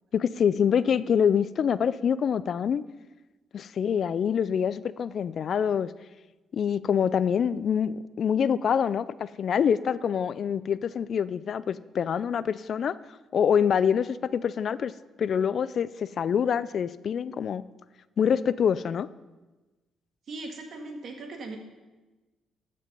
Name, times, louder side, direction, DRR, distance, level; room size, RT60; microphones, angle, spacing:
voice 1, 0.1-2.8 3.5-5.9 6.5-13.0 13.3-14.9 15.2-17.6 18.2-19.1, left 7 dB, 55° left, 17 dB, 0.3 m, -25 dB
voice 2, 20.3-21.6, right 2 dB, 55° right, 3 dB, 1.8 m, -39 dB
14.0 x 5.3 x 5.4 m, 1.2 s
cardioid pair, 90°, 0 cm